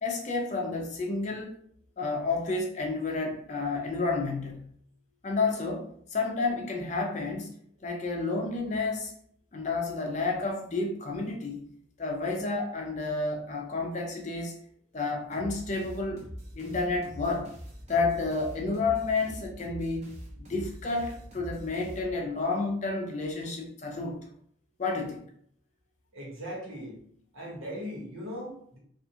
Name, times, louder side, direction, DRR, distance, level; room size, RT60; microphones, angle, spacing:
voice 1, 0.0-1.6 2.0-4.7 5.2-7.5 7.8-9.1 9.5-11.7 12.0-14.6 14.9-16.3 16.5-17.5 17.9-20.1 20.4-24.3 24.8-25.3, left 3 dB, 35° left, 1 dB, 0.4 m, -30 dB
sound 1, 15.3-22.5, equal, 35° right, 0.6 m, -44 dB
voice 2, 26.1-27.0 27.3-28.8, equal, 90° right, -4 dB, 1.2 m, -39 dB
2.4 x 2.4 x 2.8 m, 0.64 s
head